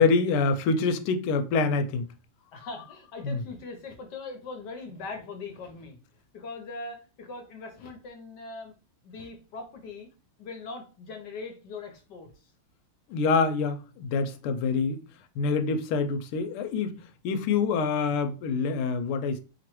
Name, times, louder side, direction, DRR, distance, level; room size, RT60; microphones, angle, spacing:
voice 1, 0.0-2.1 3.2-3.4 13.1-15.0 15.4-17.0 17.2-19.4, left 4 dB, 85° left, 1.5 m, -26 dB
voice 2, 2.5-6.0 6.3-8.7 9.0-10.1 10.4-12.5, left 3 dB, 65° left, 1.2 m, -41 dB
4.5 x 3.0 x 3.0 m
omnidirectional pair, 2.4 m